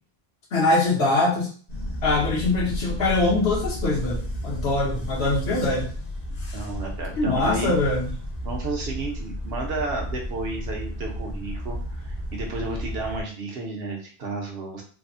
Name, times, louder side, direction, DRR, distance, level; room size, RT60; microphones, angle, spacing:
voice 1, 0.5-1.5 2.0-5.9 7.2-8.1, left 2 dB, 75° left, -3 dB, 1.2 m, -23 dB
sound 1, 1.7-13.2, equal, 45° left, 0.7 m, -32 dB
voice 2, 6.5-7.7 8.4-14.8, right 3 dB, 75° right, 0 dB, 1.0 m, -32 dB
3.3 x 2.0 x 2.5 m, 0.43 s
omnidirectional pair, 1.1 m